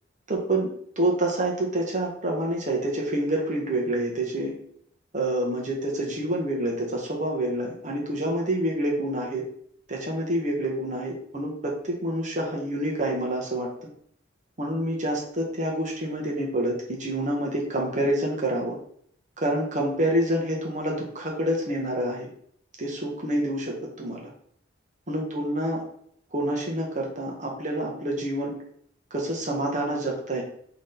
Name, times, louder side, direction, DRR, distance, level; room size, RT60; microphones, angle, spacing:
voice 1, 0.3-0.7 1.0-4.5 5.1-9.4 9.9-13.7 14.6-18.8 19.4-22.3 22.8-24.3 25.1-25.8 26.3-28.5 29.1-30.4, right 1 dB, 40° right, -1 dB, 1.6 m, -27 dB
6.4 x 3.7 x 4.0 m, 0.63 s
head